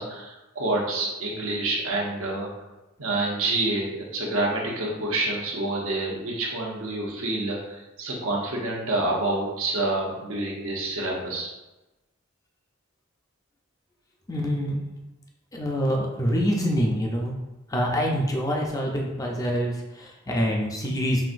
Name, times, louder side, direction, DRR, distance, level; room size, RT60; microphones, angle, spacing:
voice 1, 0.0-2.5 3.0-11.5, right 2 dB, 75° right, -2 dB, 1.0 m, -28 dB
voice 2, 14.3-15.0 15.5-17.3 17.7-21.2, equal, 15° left, 0 dB, 0.5 m, -26 dB
5.7 x 2.6 x 2.5 m, 1.0 s
head